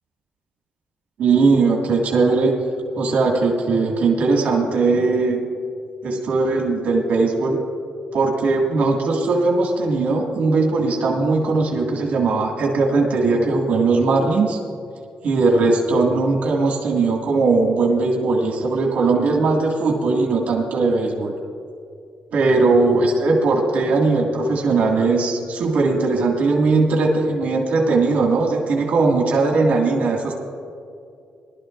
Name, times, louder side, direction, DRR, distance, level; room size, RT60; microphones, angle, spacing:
voice 1, 1.2-2.5 3.0-5.4 6.0-7.6 8.1-14.6 15.2-21.3 22.3-30.4, right 3 dB, 70° right, -1 dB, 1.9 m, -19 dB
20.0 x 12.5 x 2.5 m, 2.4 s
cardioid pair, 120°, 3 cm